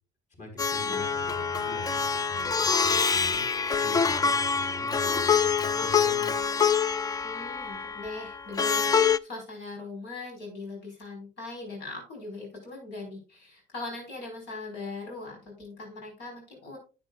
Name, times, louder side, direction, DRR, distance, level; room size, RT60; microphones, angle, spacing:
voice 1, 0.3-3.4 3.8-6.3, equal, 45° left, 2 dB, 4.4 m, -43 dB
Plucked string instrument, 0.6-9.2, left 6 dB, 25° left, 0.3 m, -26 dB
voice 2, 7.2-16.8, left 3 dB, 85° left, 0 dB, 5.0 m, -40 dB
10.5 x 8.8 x 2.4 m, 0.33 s
cardioid pair, 110°, 17 cm